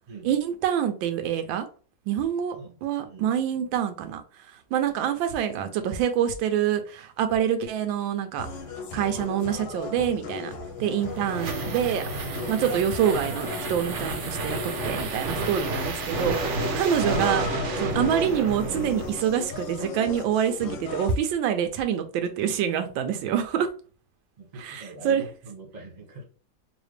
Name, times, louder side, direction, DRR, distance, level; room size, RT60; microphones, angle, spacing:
voice 1, 0.2-1.7 2.1-2.6 2.8-4.2 4.7-8.5 8.9-10.5 10.8-12.0 12.5-17.5 17.8-23.7 24.6-25.2, right 9 dB, 85° right, 1.3 m, -26 dB
voice 2, 2.2-2.8 3.0-3.3 10.8-11.0 16.5-16.8 24.4-26.2, right 3 dB, 25° right, 1.2 m, -42 dB
sound 1, 8.4-21.2, left 5 dB, 90° left, 1.5 m, -37 dB
sound 2, 10.7-19.6, right 2 dB, 55° right, 0.8 m, -31 dB
4.0 x 2.8 x 3.2 m
omnidirectional pair, 2.0 m